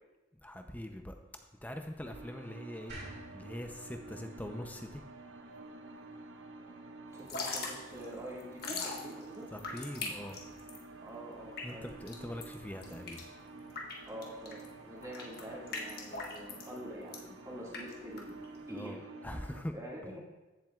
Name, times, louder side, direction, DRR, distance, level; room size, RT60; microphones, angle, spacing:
voice 1, 0.4-1.2 1.6-3.0 3.3-5.0 9.5-10.4 11.6-13.2 18.7-19.8, left 1 dB, 10° left, 5 dB, 0.7 m, -42 dB
sound 1, 2.0-19.6, right 3 dB, 75° right, 0.8 m, -50 dB
sound 2, 2.9-6.1, right 1 dB, 55° right, 3.5 m, -51 dB
Drip / Trickle dribble, 7.1-18.7, left 3 dB, 50° left, 1.4 m, -42 dB
voice 2, 7.1-9.5 11.0-11.9 14.1-18.9 19.7-20.2, equal, 15° right, -5 dB, 2.1 m, -46 dB
15.0 x 7.4 x 2.5 m, 1.2 s
head